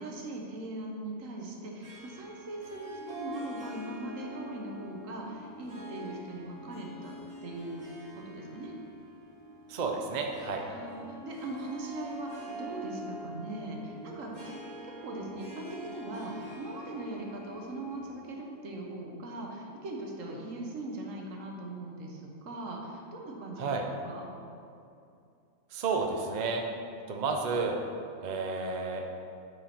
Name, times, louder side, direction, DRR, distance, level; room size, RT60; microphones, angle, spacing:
voice 1, 0.0-7.2 7.4-7.9 8.1-8.7 10.7-14.5 14.8-23.8 24.0-24.2, right 2 dB, 65° right, 0 dB, 1.4 m, -40 dB
Harp, 1.8-18.6, equal, 85° right, 2.7 m, -45 dB
voice 2, 9.7-10.6 23.6-23.8 25.7-26.6 27.1-27.8 28.2-29.0, right 4 dB, 50° right, 2 dB, 0.5 m, -31 dB
9.1 x 4.8 x 4.4 m, 2.5 s
omnidirectional pair, 1.5 m